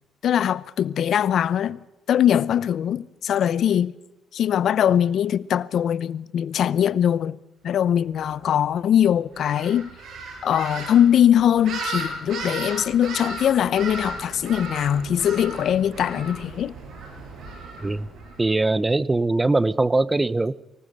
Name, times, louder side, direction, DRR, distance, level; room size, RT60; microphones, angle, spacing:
voice 1, 0.2-1.8 2.1-3.9 4.3-7.4 7.6-9.9 10.4-16.7, left 9 dB, 65° left, 0.8 m, -21 dB
sound 1, 9.3-18.4, right 2 dB, 70° right, 6.2 m, -35 dB
voice 2, 18.4-20.5, right 2 dB, 20° right, 0.8 m, -21 dB
24.5 x 18.5 x 6.8 m
cardioid pair, 90°, 0 cm